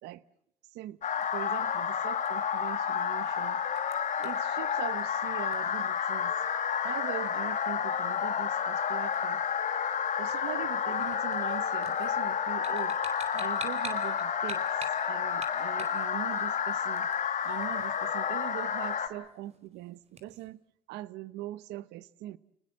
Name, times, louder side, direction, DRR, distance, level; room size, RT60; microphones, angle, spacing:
sound 1, 0.9-20.5, right 3 dB, 40° right, 4.7 m, -52 dB
sound 2, 1.0-19.1, left 7 dB, 45° left, 4.1 m, -30 dB
voice 1, 1.3-3.6 4.2-6.3 6.8-9.4 10.2-13.0 13.3-14.6 15.0-17.1 17.4-20.6 20.9-22.4, right 15 dB, 90° right, 1.0 m, -41 dB
29.5 x 20.0 x 7.5 m
cardioid pair, 110°, 17 cm